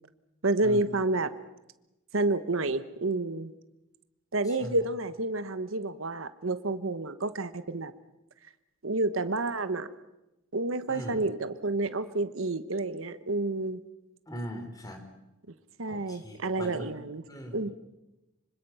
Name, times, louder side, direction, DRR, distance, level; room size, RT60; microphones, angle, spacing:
voice 1, 0.4-1.3 2.1-3.5 4.3-7.9 8.8-9.9 10.5-13.8 15.8-17.2 17.5-17.7, right 2 dB, 70° right, 12 dB, 1.2 m, -29 dB
voice 2, 10.9-11.2 14.3-15.0 15.9-16.9 17.3-17.7, equal, 20° left, 6 dB, 3.2 m, -40 dB
25.5 x 25.0 x 5.7 m, 0.96 s
head